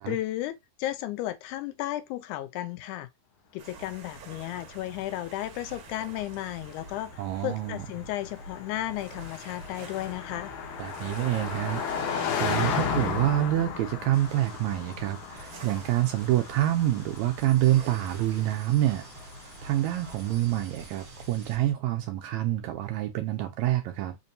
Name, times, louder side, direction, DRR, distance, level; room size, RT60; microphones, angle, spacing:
voice 1, 0.1-3.1 3.5-10.5, left 14 dB, 80° left, 1.9 m, -34 dB
sound 1, 3.6-21.7, right 2 dB, 60° right, 1.7 m, -48 dB
Car passing by, 4.3-20.7, left 6 dB, 65° left, 1.8 m, -36 dB
voice 2, 7.2-7.9 10.8-19.1 19.6-24.2, right 14 dB, 80° right, 1.7 m, -27 dB
sound 2, 14.1-21.6, right 3 dB, 35° right, 1.4 m, -51 dB
5.1 x 2.6 x 2.6 m
omnidirectional pair, 3.6 m